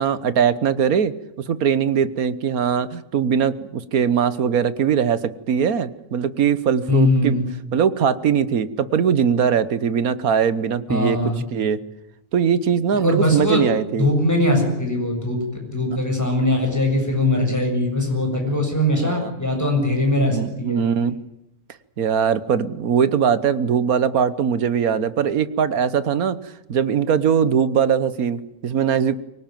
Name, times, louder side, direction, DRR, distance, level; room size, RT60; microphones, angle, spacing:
voice 1, 0.0-7.4 7.7-11.8 12.3-14.1 15.9-16.1 18.9-19.3 20.3-21.2 22.0-29.2, right 7 dB, 75° right, 15 dB, 1.6 m, -21 dB
voice 2, 6.9-7.5 10.9-11.4 13.0-13.7 14.0-20.8, left 1 dB, 10° left, 2 dB, 7.1 m, -21 dB
24.5 x 18.5 x 9.2 m, 0.86 s
omnidirectional pair, 1.5 m